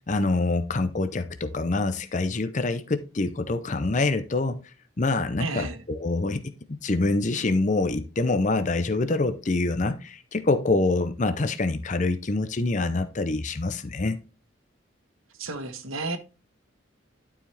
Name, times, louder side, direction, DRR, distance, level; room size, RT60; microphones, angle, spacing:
voice 1, 0.1-4.6 5.0-6.4 6.7-14.2, left 2 dB, 35° left, 0.6 m, -25 dB
voice 2, 5.4-5.8 15.4-16.2, right 3 dB, 90° right, 1.3 m, -32 dB
11.5 x 4.8 x 3.3 m
head